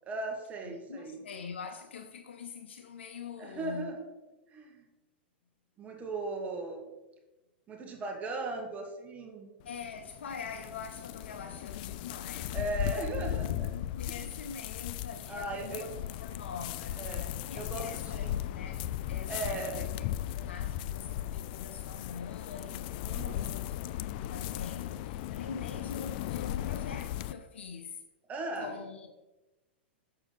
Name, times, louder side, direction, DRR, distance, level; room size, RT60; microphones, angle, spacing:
voice 1, 0.1-1.2 3.4-4.1 4.5-4.9 5.8-6.9 7.7-9.5 12.5-13.7 15.3-15.8 17.0-17.3 17.5-18.4 19.3-19.9 23.0-23.6 28.3-28.8, right 2 dB, 25° right, 1.6 m, -37 dB
voice 2, 0.6-3.9 9.6-23.7 24.1-28.0 28.6-29.2, left 6 dB, 90° left, 0.7 m, -44 dB
sound 1, 9.6-27.3, left 12 dB, 55° left, 0.3 m, -37 dB
7.3 x 6.7 x 4.0 m
hypercardioid pair, 125°, 6 cm